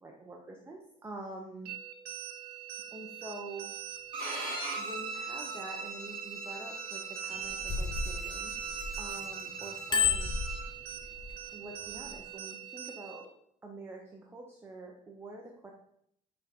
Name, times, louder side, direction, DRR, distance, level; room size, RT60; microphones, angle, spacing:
voice 1, 0.0-1.7 2.9-3.7 4.8-8.6 9.0-10.3 11.5-13.3 13.6-15.7, right 2 dB, 15° right, 0 dB, 0.8 m, -46 dB
sound 1, 1.7-13.3, right 10 dB, 80° right, 0.9 m, -44 dB
Bowed string instrument, 4.1-10.6, right 3 dB, 30° right, 2.8 m, -39 dB
Bicycle bell, 7.3-9.2 9.6-11.3 11.9-12.1, left 7 dB, 25° left, 0.6 m, -32 dB
8.6 x 3.8 x 4.4 m, 0.70 s
cardioid pair, 170°, 16 cm